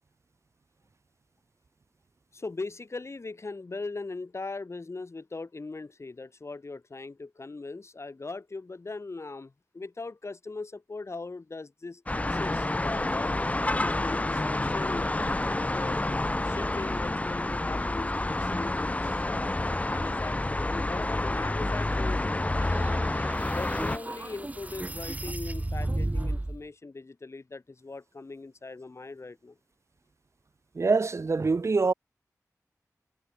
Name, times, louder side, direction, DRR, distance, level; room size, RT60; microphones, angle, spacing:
voice 1, 2.3-13.4 13.8-16.0 16.4-19.5 19.8-22.6 23.5-29.6, left 3 dB, 50° left, 2.4 m, -40 dB
sound 1, 12.1-24.0, left 2 dB, 20° left, 0.8 m, -29 dB
sound 2, 22.6-26.6, right 1 dB, 25° right, 4.5 m, -34 dB
voice 2, 30.7-31.9, right 4 dB, 50° right, 0.6 m, -24 dB
wide cardioid pair, 75°, 6 cm